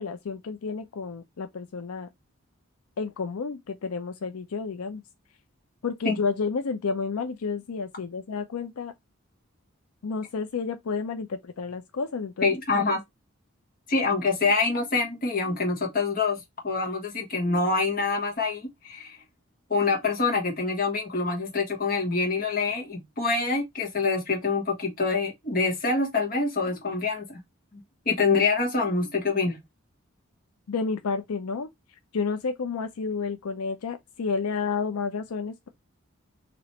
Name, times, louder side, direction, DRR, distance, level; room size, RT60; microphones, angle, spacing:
voice 1, 0.0-2.1 3.0-5.0 5.8-8.9 10.0-12.5 30.7-31.7 32.1-35.7, left 5 dB, 85° left, 0.5 m, -30 dB
voice 2, 12.4-13.0 13.9-19.2 19.7-27.4 28.0-29.6, left 4 dB, 40° left, 1.4 m, -26 dB
3.1 x 2.9 x 4.2 m
head